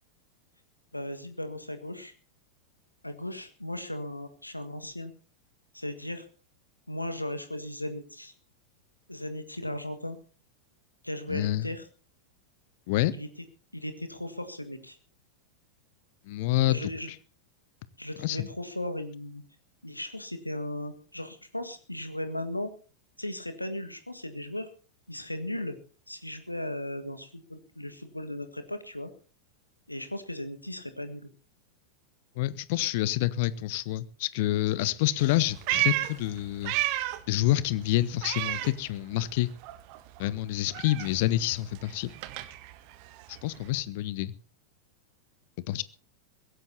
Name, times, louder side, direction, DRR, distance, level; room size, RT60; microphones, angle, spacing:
voice 1, 0.9-2.1 3.0-5.1 5.7-6.3 6.9-8.3 9.1-10.2 11.0-11.8 13.1-13.3 13.7-15.0 16.6-17.1 18.0-19.4 19.8-22.7 23.2-24.7 25.1-25.8 26.1-29.1 29.9-31.3, left 1 dB, 85° left, 9 dB, 1.7 m, -36 dB
voice 2, 11.3-11.7 12.9-13.1 16.3-16.9 18.2-18.5 32.4-36.7 37.3-39.5 40.2-42.1 43.4-44.3 45.7-45.8, left 15 dB, 50° left, 18 dB, 1.0 m, -27 dB
Meow, 35.2-37.3 37.6-39.4 39.6-43.8, right 16 dB, 45° right, 1.4 m, -33 dB
23.0 x 16.5 x 2.8 m, 0.37 s
figure-of-eight pair, 90°, 0 cm